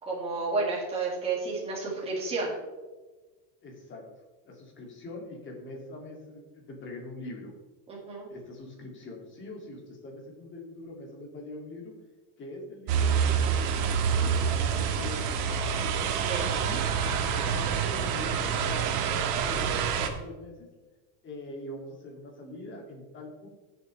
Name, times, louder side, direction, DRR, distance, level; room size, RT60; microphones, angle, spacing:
voice 1, 0.0-2.6 7.9-8.3 16.2-16.6, right 3 dB, 10° right, -5 dB, 2.3 m, -31 dB
voice 2, 3.6-4.0 4.4-7.5 8.3-11.9 12.4-15.7 16.6-16.8 17.2-20.7 21.2-23.5, left 2 dB, 25° left, 0 dB, 2.5 m, -43 dB
sound 1, 12.9-20.1, right 7 dB, 75° right, 1.6 m, -27 dB
16.0 x 6.9 x 3.3 m, 1.2 s
supercardioid pair, 160°, 48 cm